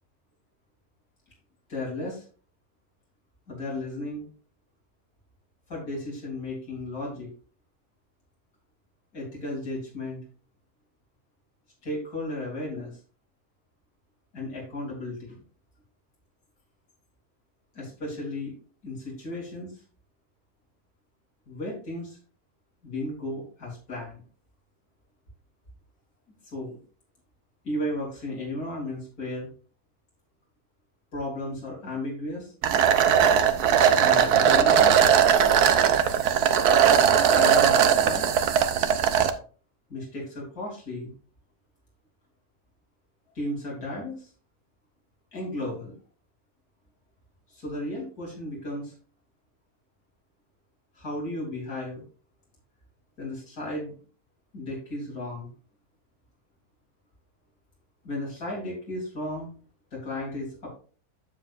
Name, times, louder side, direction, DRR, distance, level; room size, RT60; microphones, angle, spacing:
voice 1, 1.7-2.2 3.5-4.2 5.7-7.3 9.1-10.2 11.8-12.9 14.3-15.4 17.8-18.5 18.8-19.7 21.5-22.2 22.8-24.2 26.5-26.8 27.6-29.5 31.1-32.5 33.9-34.9 37.3-38.3 39.9-41.1 43.4-44.3 45.3-45.9 47.5-48.9 51.0-52.0 53.2-54.0 54.5-55.5 58.0-59.5 59.9-60.7, left 1 dB, 75° left, -4 dB, 4.0 m, -34 dB
sound 1, 32.6-39.3, right 8 dB, 90° right, 1.3 m, -19 dB
10.5 x 7.2 x 2.5 m, 0.39 s
omnidirectional pair, 1.6 m